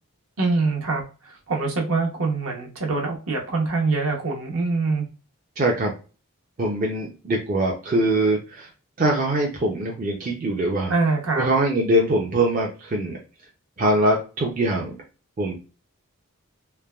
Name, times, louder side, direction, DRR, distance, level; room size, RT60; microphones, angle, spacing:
voice 1, 0.4-5.1 10.9-11.5, right 3 dB, 65° right, 1 dB, 0.8 m, -24 dB
voice 2, 5.6-5.9 6.6-8.7 9.0-10.9 11.4-13.2 13.8-15.0 15.4-15.6, right 1 dB, 35° right, -1 dB, 0.4 m, -22 dB
3.2 x 2.1 x 2.2 m, 0.33 s
head